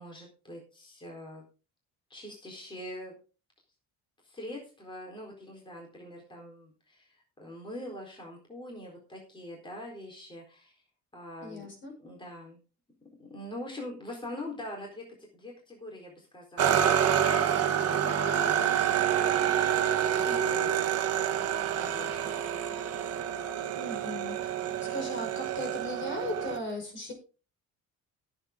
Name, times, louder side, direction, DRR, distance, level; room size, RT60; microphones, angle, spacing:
voice 1, 0.0-1.4 2.1-3.1 4.2-10.8 11.1-11.7 12.0-12.6 13.2-18.6 19.0-20.7 21.3-21.4 21.7-22.4, left 1 dB, 15° left, 0 dB, 4.2 m, -44 dB
voice 2, 11.4-11.9 23.8-27.1, left 1 dB, 40° left, 5 dB, 5.5 m, -38 dB
sound 1, 16.6-26.6, right 9 dB, 50° right, 1.5 m, -28 dB
17.5 x 8.2 x 3.8 m, 0.34 s
cardioid pair, 165°, 31 cm